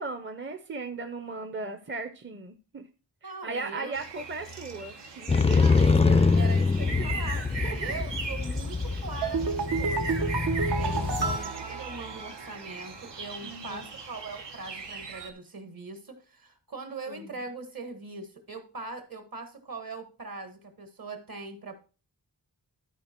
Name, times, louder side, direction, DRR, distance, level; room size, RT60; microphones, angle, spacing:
voice 1, 0.0-2.9 3.2-5.7 6.8-7.1 7.6-8.1 13.4-13.8 17.1-17.3, right 3 dB, 30° right, 7 dB, 0.6 m, -37 dB
voice 2, 3.2-4.0 5.5-21.8, right 3 dB, 55° right, 7 dB, 1.6 m, -41 dB
sound 1, 3.9-15.3, right 4 dB, 90° right, 1.3 m, -39 dB
Motorcycle, 5.3-11.4, left 4 dB, 15° left, 0.3 m, -25 dB
sound 2, 9.2-12.6 12.9-13.0, right 5 dB, 70° right, 0.9 m, -31 dB
12.0 x 4.4 x 4.4 m, 0.34 s
wide cardioid pair, 110°, 42 cm